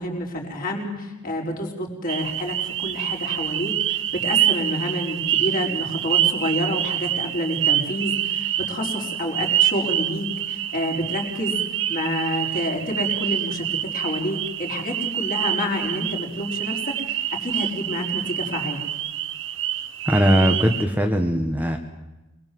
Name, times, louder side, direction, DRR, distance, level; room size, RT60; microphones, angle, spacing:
voice 1, 0.0-11.6 11.9-13.6 13.9-18.8, left 1 dB, 40° left, 0 dB, 5.0 m, -28 dB
sound 1, 2.1-20.8, right 12 dB, 60° right, 1.1 m, -26 dB
voice 2, 20.0-21.8, equal, 10° right, 3 dB, 1.4 m, -20 dB
26.5 x 21.0 x 7.8 m, 1.0 s
head